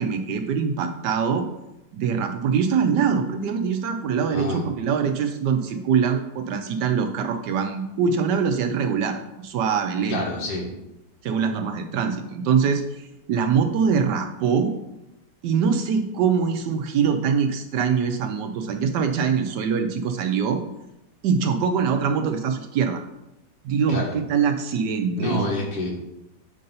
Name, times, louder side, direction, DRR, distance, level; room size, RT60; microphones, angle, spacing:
voice 1, 0.0-1.5 1.9-10.2 11.2-14.7 15.4-20.6 21.2-23.0 23.6-25.4, right 6 dB, 75° right, 6 dB, 1.1 m, -23 dB
voice 2, 4.3-4.6 10.1-10.7 23.9-24.1 25.2-25.9, left 1 dB, 75° left, -2 dB, 2.1 m, -27 dB
7.5 x 2.6 x 5.4 m, 0.88 s
omnidirectional pair, 2.0 m